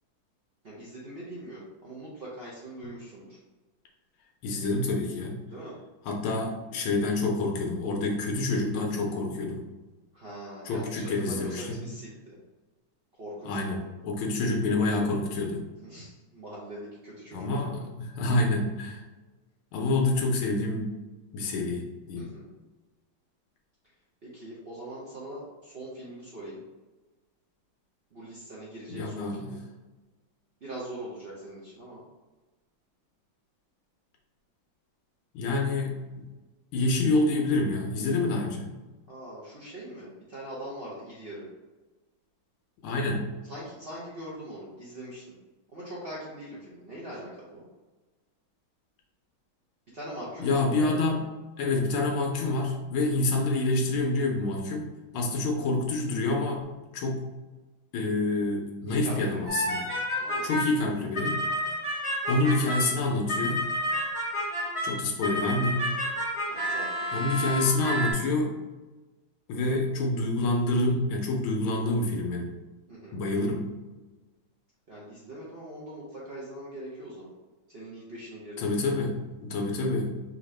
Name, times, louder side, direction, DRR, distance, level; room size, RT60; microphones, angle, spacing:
voice 1, 0.6-3.4 5.5-5.7 10.1-12.4 13.1-13.8 15.8-17.9 22.2-22.5 24.2-26.6 28.1-29.6 30.6-32.0 39.1-41.5 43.4-45.3 45.7-47.6 49.9-51.1 53.0-53.3 55.1-55.4 58.8-59.6 60.2-60.6 66.5-67.1 72.9-73.2 74.9-77.3 77.7-78.9, right 1 dB, 75° right, -6 dB, 0.5 m, -42 dB
voice 2, 4.4-5.4 6.1-9.6 10.7-11.8 13.5-13.8 14.0-15.6 17.3-19.0 19.7-20.9 21.3-22.3 28.9-29.5 35.3-36.2 36.7-38.7 42.8-43.3 50.4-51.2 51.6-54.9 55.1-56.6 56.9-57.3 57.9-59.8 60.4-61.4 62.3-63.7 64.8-65.9 67.1-68.5 69.5-72.5 73.1-73.7 78.6-80.1, left 2 dB, 85° left, 0 dB, 1.5 m, -27 dB
sound 1, 59.5-60.8 61.1-68.1, equal, 30° left, 0.6 m, -30 dB
4.9 x 2.8 x 3.2 m, 1.2 s
omnidirectional pair, 2.3 m